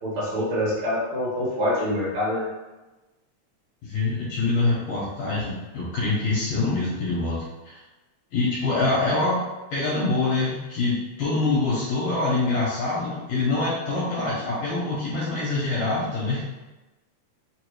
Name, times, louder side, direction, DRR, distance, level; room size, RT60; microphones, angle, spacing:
voice 1, 0.0-2.4, left 1 dB, 55° right, -7 dB, 1.9 m, -25 dB
voice 2, 3.8-7.4 7.6-7.8 8.3-9.4 9.7-16.4, left 3 dB, 70° left, -7 dB, 2.1 m, -25 dB
4.7 x 2.6 x 3.0 m, 1.1 s
omnidirectional pair, 3.4 m